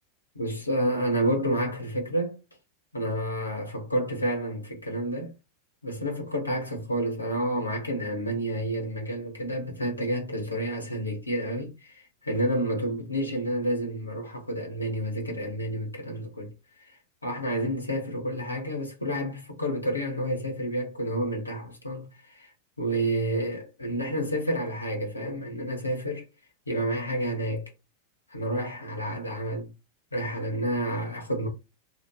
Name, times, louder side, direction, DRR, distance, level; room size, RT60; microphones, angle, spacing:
voice 1, 0.3-2.4 2.9-5.3 5.8-16.5 17.2-22.5 22.8-26.2 26.7-27.7 28.3-29.7 30.1-31.5, right 1 dB, 80° left, 0.9 m, -29 dB
2.9 x 2.4 x 2.3 m
figure-of-eight pair, 90°, 0 cm